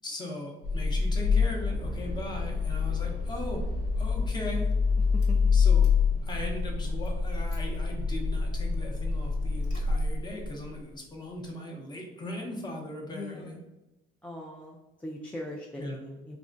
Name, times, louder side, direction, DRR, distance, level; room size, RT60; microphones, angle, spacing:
voice 1, 0.0-3.6 4.0-4.7 5.5-5.9 6.2-13.6 15.8-16.1, left 1 dB, 25° left, 0 dB, 0.7 m, -39 dB
Car / Engine starting, 0.6-10.7, left 5 dB, 65° left, 1.0 m, -27 dB
voice 2, 13.1-13.7 14.2-16.4, left 1 dB, 10° left, -2 dB, 0.3 m, -40 dB
3.5 x 2.1 x 2.5 m, 0.99 s
cardioid pair, 110°, 17 cm